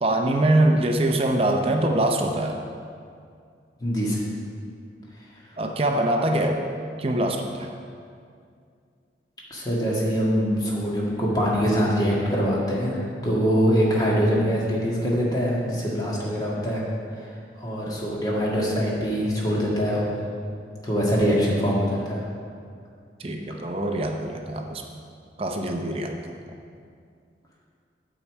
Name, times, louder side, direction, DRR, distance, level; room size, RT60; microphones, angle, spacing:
voice 1, 0.0-2.6 5.6-6.7 7.0-7.7 23.2-24.8 25.4-26.3, right 1 dB, 30° right, 3 dB, 0.6 m, -23 dB
voice 2, 3.8-4.2 9.5-16.9 17.2-17.3 17.6-20.1 20.8-22.2, equal, 20° left, -5 dB, 1.7 m, -23 dB
8.6 x 4.8 x 7.2 m, 2.2 s
head